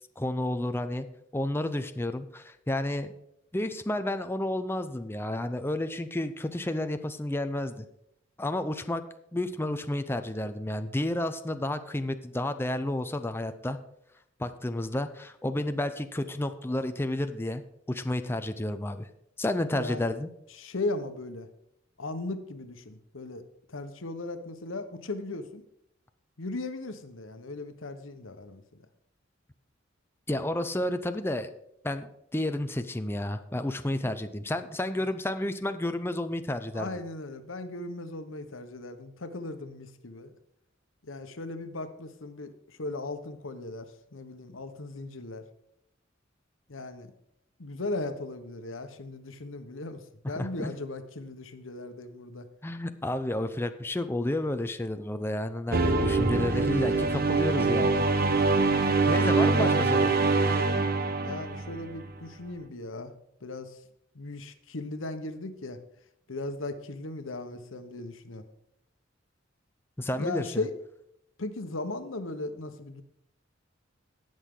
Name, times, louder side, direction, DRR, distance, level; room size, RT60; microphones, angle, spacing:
voice 1, 0.2-1.1 1.3-3.1 3.5-7.9 8.4-9.0 9.3-13.8 14.4-17.6 17.9-19.1 19.4-20.3 30.3-31.5 31.8-36.9 50.4-50.7 52.6-58.0 59.1-60.2 70.0-70.6, left 1 dB, 10° left, 8 dB, 0.6 m, -31 dB
voice 2, 19.7-20.0 20.5-21.5 22.0-23.4 23.7-25.6 26.4-28.9 36.7-40.3 41.0-45.5 46.7-47.1 47.6-52.5 61.2-63.1 63.4-63.8 64.1-65.8 66.3-68.4 70.2-70.7 71.4-73.0, left 2 dB, 90° left, 9 dB, 1.1 m, -37 dB
sound 1, 55.7-62.1, right 3 dB, 50° right, 1.0 m, -24 dB
18.5 x 6.4 x 3.8 m, 0.79 s
head